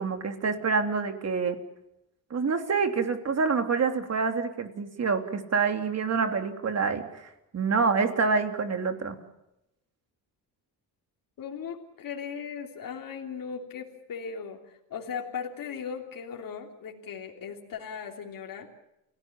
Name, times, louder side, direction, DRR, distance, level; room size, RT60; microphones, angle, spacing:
voice 1, 0.0-1.6 2.3-9.2, right 5 dB, 40° right, 6 dB, 3.2 m, -27 dB
voice 2, 11.4-18.7, left 6 dB, 60° left, 1 dB, 3.3 m, -38 dB
29.5 x 18.0 x 7.4 m, 0.90 s
cardioid pair, 115°, 38 cm